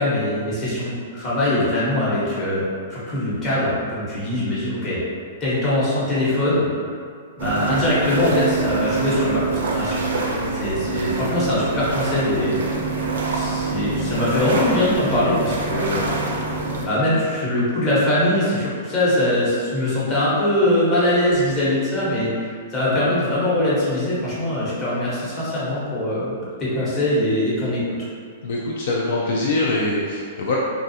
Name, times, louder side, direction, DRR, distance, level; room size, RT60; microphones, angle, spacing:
voice 1, 0.0-2.6 2.9-5.0 5.4-6.7 7.4-10.0 10.5-12.6 12.9-13.0 13.3-16.4 16.8-27.8, left 1 dB, 25° left, -9 dB, 0.9 m, -22 dB
sound 1, 7.4-16.9, right 3 dB, 85° right, 0.4 m, -25 dB
voice 2, 28.4-30.6, left 2 dB, 65° left, -4 dB, 0.3 m, -23 dB
2.4 x 2.3 x 2.7 m, 2.1 s
hypercardioid pair, 140°, 0 cm